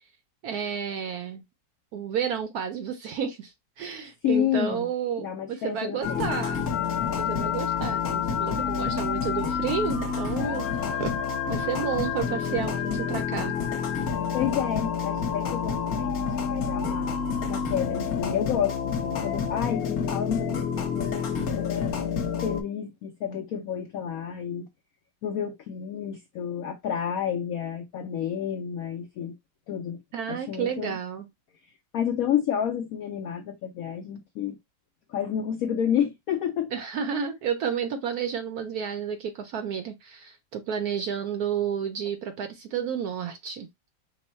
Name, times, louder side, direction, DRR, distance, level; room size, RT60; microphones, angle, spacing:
voice 1, 0.4-1.4 1.9-6.6 7.2-11.1 11.5-13.6 16.9-17.0 30.1-31.3 36.7-43.7, right 7 dB, 70° right, 0.9 m, -31 dB
voice 2, 4.2-4.9 5.2-6.4 14.3-17.1 17.5-21.9 22.4-24.7 25.2-29.4 29.7-30.0 30.3-31.0 31.9-34.6 35.1-36.7, left 9 dB, 80° left, 0.7 m, -30 dB
sound 1, 6.0-22.6, left 6 dB, 60° left, 1.2 m, -28 dB
5.3 x 2.1 x 4.2 m
omnidirectional pair, 2.0 m